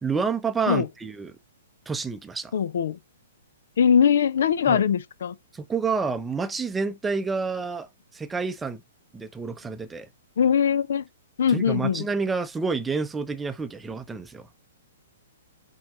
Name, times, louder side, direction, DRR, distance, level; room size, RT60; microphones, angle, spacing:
voice 1, 0.0-1.3 1.9-2.5 4.7-4.8 5.5-7.9 8.1-8.8 9.1-10.1 11.5-14.5, right 4 dB, 10° right, 0.6 m, -29 dB
voice 2, 2.5-3.0 3.8-5.3 10.4-11.0 11.4-12.0, left 7 dB, 55° left, 0.4 m, -21 dB
8.6 x 3.0 x 3.9 m
figure-of-eight pair, 115°, 0 cm